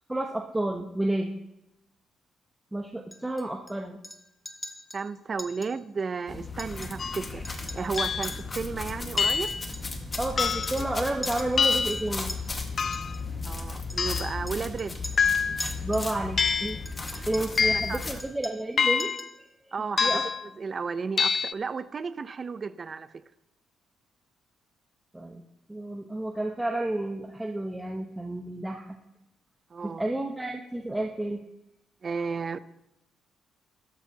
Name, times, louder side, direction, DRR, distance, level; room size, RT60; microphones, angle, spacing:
voice 1, 0.1-1.3 2.7-4.0 10.2-12.4 15.8-16.8 17.1-19.1 19.6-19.7 20.0-20.2 25.1-25.4 25.7-29.0 29.8-31.4, right 1 dB, 10° right, 1.1 m, -31 dB
Chink clink, 3.1-3.7 4.0-4.2 4.4-5.0 5.4-5.7 6.0-6.1 6.5-7.2 7.4-10.4 10.6-10.9 11.2-12.4 12.9-13.2 13.9-16.1 16.4-17.7 18.0-18.7 19.0-19.4, left 1 dB, 10° left, 1.4 m, -42 dB
voice 2, 4.9-9.5 13.4-14.9 17.1-18.0 19.7-20.1 20.6-23.1 29.7-30.0 32.0-32.6, right 5 dB, 40° right, 0.7 m, -33 dB
sound 1, 6.3-18.2, left 3 dB, 30° left, 1.7 m, -36 dB
sound 2, 7.0-7.2 8.0-8.4 9.2-9.6 10.4-10.8 11.6-12.1 12.8-13.2 14.0-14.4 15.2-15.7 16.4-16.8 17.6-18.0 18.8-19.3 20.0-20.4 21.2-21.5, left 6 dB, 45° left, 0.4 m, -26 dB
17.0 x 13.5 x 2.9 m
cardioid pair, 90°, 0 cm